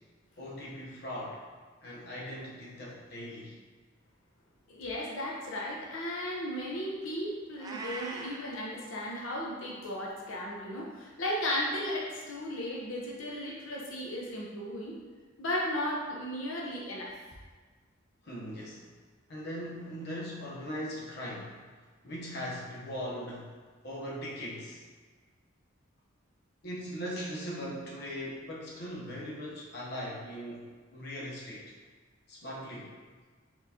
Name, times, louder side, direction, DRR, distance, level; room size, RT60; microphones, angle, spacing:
voice 1, 0.4-1.4 1.8-3.6 18.2-18.9 19.3-21.6 22.0-23.5 23.8-24.8 26.6-31.7 32.3-32.9, equal, 55° left, -5 dB, 0.8 m, -39 dB
voice 2, 4.7-15.0 15.4-17.1, left 1 dB, 90° left, -4 dB, 0.8 m, -35 dB
Meow, 7.6-8.4, right 2 dB, 20° right, 0.3 m, -40 dB
4.5 x 3.9 x 2.7 m, 1.5 s
head